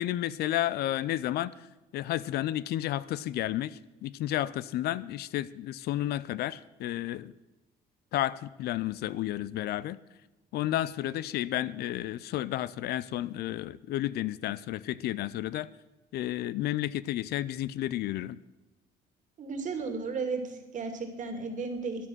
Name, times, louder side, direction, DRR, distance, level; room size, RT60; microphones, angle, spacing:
voice 1, 0.0-1.5 1.9-7.3 8.1-10.0 10.5-15.7 16.1-18.4, left 13 dB, 70° left, 18 dB, 0.5 m, -31 dB
voice 2, 19.4-22.1, right 4 dB, 50° right, 6 dB, 2.4 m, -34 dB
12.5 x 10.0 x 6.2 m, 1.1 s
cardioid pair, 110°, 17 cm